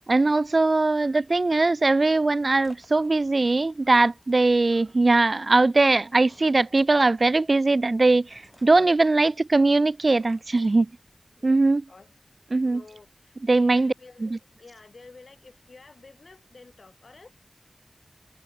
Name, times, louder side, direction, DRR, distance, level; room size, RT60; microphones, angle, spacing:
voice 1, 0.1-10.9 11.4-11.8 12.5-12.8 13.5-13.9 14.2-14.4, right 3 dB, 60° right, 0.4 m, -21 dB
sound 1, 2.4-11.4, equal, 5° left, 6.1 m, -60 dB
voice 2, 11.4-12.2 12.6-17.3, left 3 dB, 80° left, 3.4 m, -50 dB
wide cardioid pair, 65°, 0 cm